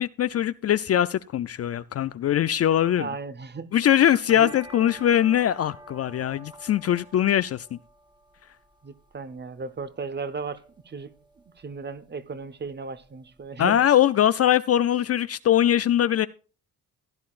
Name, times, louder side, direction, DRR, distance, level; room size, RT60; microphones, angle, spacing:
voice 1, 0.0-3.1 3.7-7.8 13.6-16.3, left 11 dB, 45° left, 0.4 m, -22 dB
voice 2, 2.9-4.5 8.8-11.1 11.5-13.8, right 4 dB, 30° right, 0.9 m, -36 dB
sound 1, 4.1-13.5, right 1 dB, 15° right, 1.5 m, -50 dB
15.5 x 10.5 x 2.5 m
cardioid pair, 90°, 34 cm